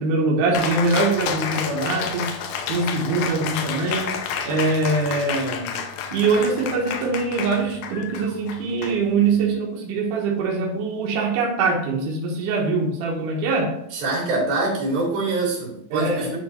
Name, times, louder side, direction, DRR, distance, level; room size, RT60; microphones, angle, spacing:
voice 1, 0.0-2.3 2.7-5.7 6.1-13.8 15.9-16.3, right 3 dB, 70° right, -2 dB, 2.6 m, -23 dB
Cheering, 0.5-9.5, left 7 dB, 75° left, 1.9 m, -30 dB
voice 2, 13.9-16.4, right 2 dB, 85° right, -2 dB, 4.1 m, -24 dB
9.9 x 3.6 x 4.3 m, 0.75 s
omnidirectional pair, 4.0 m